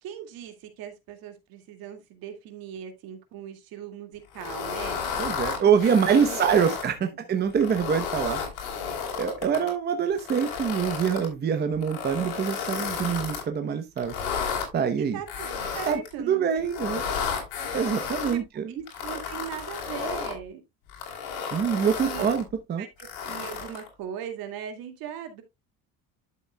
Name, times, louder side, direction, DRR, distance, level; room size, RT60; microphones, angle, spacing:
voice 1, 0.0-5.0 5.5-6.8 7.0-7.2 15.1-16.8 18.3-18.4 18.7-20.6 22.0-22.4 22.8-25.4, right 9 dB, 70° right, 2.2 m, -39 dB
sound 1, 4.3-6.9 7.5-9.7 10.2-11.3 11.8-13.4 14.0-14.7 15.3-16.1 16.6-18.3 18.9-20.4 20.9-22.4 23.0-23.9, left 6 dB, 80° left, 4.5 m, -32 dB
voice 2, 5.2-8.4 9.1-14.1 14.7-15.2 15.8-16.0 16.2-17.0 17.7-18.8 21.5-22.9, right 7 dB, 25° right, 0.9 m, -25 dB
11.5 x 7.0 x 2.3 m
cardioid pair, 165°, 37 cm